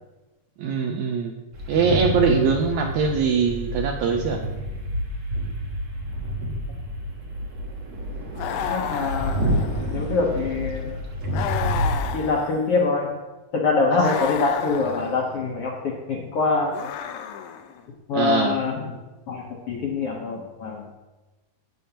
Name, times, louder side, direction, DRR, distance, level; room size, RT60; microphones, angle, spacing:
voice 1, 0.6-1.3 1.7-4.4 18.1-18.6, right 5 dB, 80° right, 3 dB, 1.7 m, -22 dB
sound 1, 1.5-12.0, equal, 60° right, 1.5 m, -29 dB
sound 2, 8.4-10.1 11.3-12.9 14.0-15.3 16.7-17.8, left 9 dB, 90° left, 2.4 m, -32 dB
voice 2, 8.7-9.4 9.9-11.0 12.1-13.1 13.5-16.7 18.1-18.9 19.3-20.9, left 4 dB, 70° left, -2 dB, 1.4 m, -24 dB
10.5 x 8.9 x 2.8 m, 1.2 s
omnidirectional pair, 3.9 m